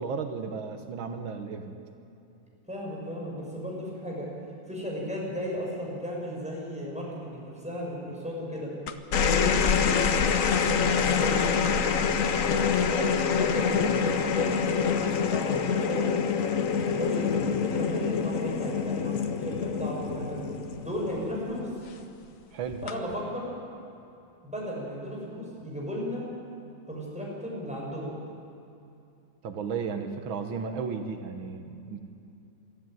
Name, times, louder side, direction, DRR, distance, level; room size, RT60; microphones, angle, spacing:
voice 1, 0.0-1.8 22.5-22.8 29.4-32.0, right 5 dB, 85° right, 6 dB, 1.9 m, -34 dB
voice 2, 2.7-4.3 4.7-8.7 9.2-10.0 10.4-12.1 12.8-16.1 16.9-20.5 20.8-21.7 22.8-23.5 24.4-26.2 26.9-28.2, equal, 5° right, -4 dB, 6.0 m, -35 dB
sound 1, 8.9-21.5 22.7-23.1, left 6 dB, 50° left, 1.1 m, -26 dB
23.0 x 13.5 x 9.1 m, 2.7 s
omnidirectional pair, 2.1 m